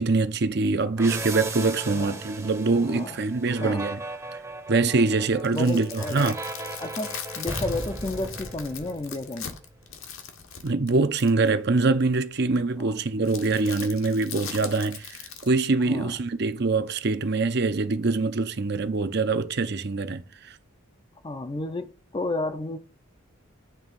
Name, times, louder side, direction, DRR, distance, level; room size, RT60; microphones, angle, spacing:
voice 1, 0.0-4.0 4.7-6.4 10.6-20.6, right 3 dB, 50° right, 0.6 m, -24 dB
sound 1, 1.0-9.4, right 2 dB, 15° right, 0.8 m, -36 dB
voice 2, 1.9-2.2 2.8-3.2 3.5-3.9 5.5-6.3 6.8-9.6 12.8-13.0 15.8-16.1 21.2-22.8, left 2 dB, 20° left, 0.5 m, -32 dB
sound 2, 5.2-11.5 13.3-15.5, left 7 dB, 70° left, 1.2 m, -40 dB
9.0 x 3.5 x 5.3 m
head